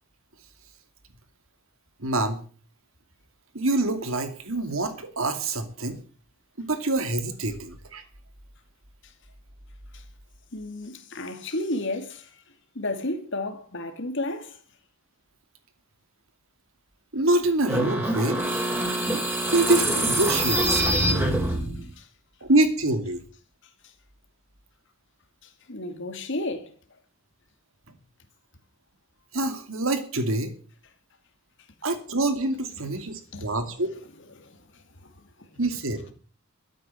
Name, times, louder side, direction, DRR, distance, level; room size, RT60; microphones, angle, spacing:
voice 1, 2.0-2.4 3.5-6.0 6.6-8.0 17.1-18.4 19.4-20.9 22.4-23.2 29.3-30.5 31.8-33.9 35.6-36.0, right 2 dB, 75° right, 2.7 m, -25 dB
voice 2, 10.5-12.4 12.7-14.6 19.0-19.4 21.0-21.1 22.0-22.1 25.4-26.7 33.3-33.5 34.4-34.8, left 2 dB, 60° left, 2.6 m, -33 dB
sound 1, 17.6-21.9, right 1 dB, 10° right, 4.1 m, -25 dB
13.0 x 9.6 x 7.8 m
head